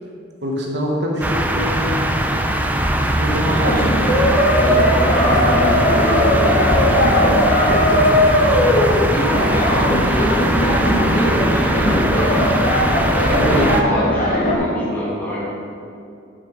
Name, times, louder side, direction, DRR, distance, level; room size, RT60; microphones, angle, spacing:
voice 1, 0.4-2.0 3.1-3.8 13.2-13.7, equal, 65° right, -1 dB, 1.1 m, -23 dB
sound 1, 1.2-13.8, right 1 dB, 10° right, 0.4 m, -20 dB
sound 2, 2.9-9.6, left 1 dB, 85° left, 0.7 m, -31 dB
sound 3, 3.4-14.6, left 1 dB, 45° left, 1.5 m, -18 dB
voice 2, 4.6-8.9 9.4-12.6 13.1-15.6, equal, 10° left, -7 dB, 1.1 m, -26 dB
7.6 x 5.2 x 3.8 m, 2.5 s
head